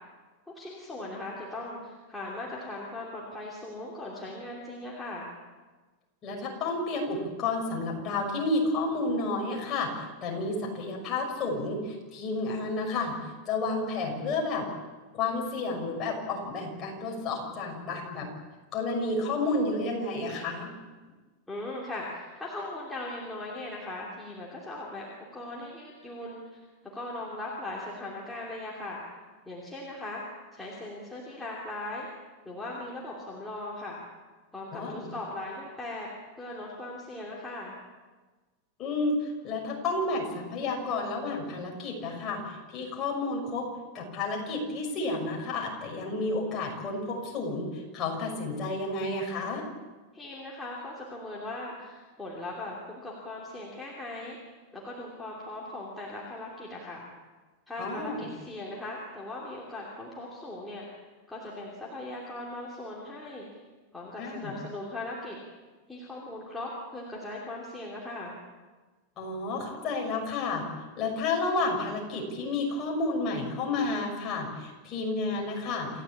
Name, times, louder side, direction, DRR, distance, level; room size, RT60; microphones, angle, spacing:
voice 1, 0.5-5.3 21.5-25.1 25.3-26.6 26.9-29.0 29.5-30.2 30.5-32.1 32.4-34.0 34.5-36.1 36.4-37.8 50.1-57.0 57.7-60.9 61.3-63.5 63.9-65.4 65.9-68.3, left 2 dB, 5° left, -5 dB, 2.9 m, -39 dB
voice 2, 6.2-13.2 13.5-14.7 15.1-18.3 18.7-20.7 34.7-35.1 38.8-43.7 43.9-49.7 57.8-58.2 64.2-64.5 69.2-70.6 71.0-75.9, left 3 dB, 20° left, 0 dB, 5.9 m, -31 dB
28.0 x 16.0 x 8.6 m, 1.3 s
supercardioid pair, 180°, 0 cm